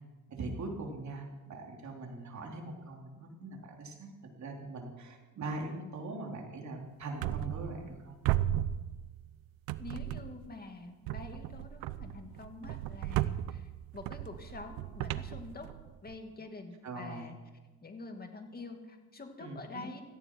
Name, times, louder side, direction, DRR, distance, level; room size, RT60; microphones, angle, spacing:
voice 1, 0.3-4.1 4.4-8.2 16.8-17.3 19.4-19.9, right 2 dB, 50° right, 1 dB, 3.5 m, -41 dB
sound 1, 7.2-8.0 8.2-9.3 9.7-10.5 11.1-16.1, right 13 dB, 90° right, 0.7 m, -35 dB
voice 2, 9.8-15.7 16.0-17.4 17.8-20.0, left 3 dB, 25° left, 5 dB, 2.4 m, -46 dB
17.0 x 15.0 x 4.7 m, 1.2 s
cardioid pair, 95°, 35 cm